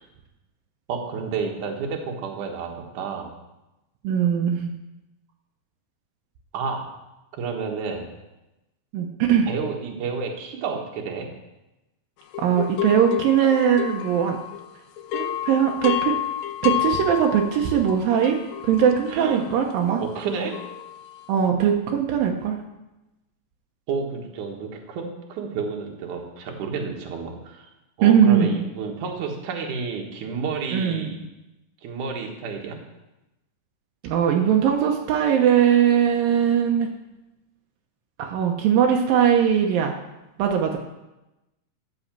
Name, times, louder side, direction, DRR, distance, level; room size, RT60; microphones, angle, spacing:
voice 1, 0.9-3.3 6.5-6.8 7.3-8.1 9.5-11.3 19.1-19.5 20.0-20.6 23.9-27.7 28.0-31.2 31.8-32.8, right 5 dB, 65° right, 1 dB, 2.9 m, -30 dB
voice 2, 4.0-4.7 8.9-9.5 12.4-14.4 15.1-16.1 16.6-18.4 18.6-20.0 21.3-22.5 28.0-28.5 30.7-31.1 34.0-36.9 38.2-39.9 40.4-40.8, right 8 dB, 85° right, 2 dB, 2.7 m, -20 dB
sound 1, 12.3-14.7 15.0-21.3, left 12 dB, 75° left, 1.8 m, -30 dB
13.0 x 6.4 x 7.5 m, 0.99 s
omnidirectional pair, 3.9 m